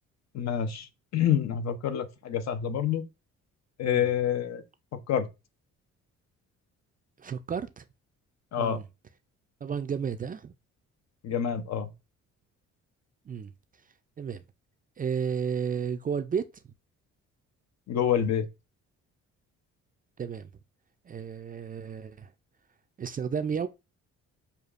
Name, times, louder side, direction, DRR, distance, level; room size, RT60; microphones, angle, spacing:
voice 1, 0.3-3.1 3.8-4.6 4.9-5.3 8.5-8.8 11.2-11.9 17.9-18.5, left 9 dB, 60° left, 0.7 m, -27 dB
voice 2, 7.2-7.9 8.6-8.9 9.6-10.5 13.3-13.5 14.2-14.4 15.0-16.7 20.2-20.5 21.0-22.3 23.0-23.7, right 7 dB, 30° right, 0.4 m, -32 dB
6.6 x 2.4 x 2.4 m
cardioid pair, 90°, 30 cm